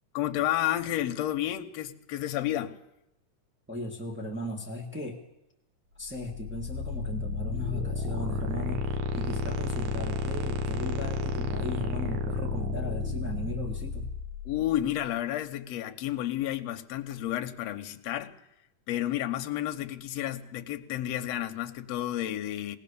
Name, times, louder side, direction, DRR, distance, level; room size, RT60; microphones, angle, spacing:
voice 1, 0.1-2.8 14.5-18.4 18.9-22.8, left 13 dB, 65° left, 1.9 m, -31 dB
voice 2, 3.7-5.2 5.9-14.1, left 1 dB, 10° right, 0.7 m, -37 dB
sound 1, 6.1-15.0, left 2 dB, 65° right, 2.6 m, -32 dB
20.0 x 18.5 x 7.0 m
omnidirectional pair, 3.7 m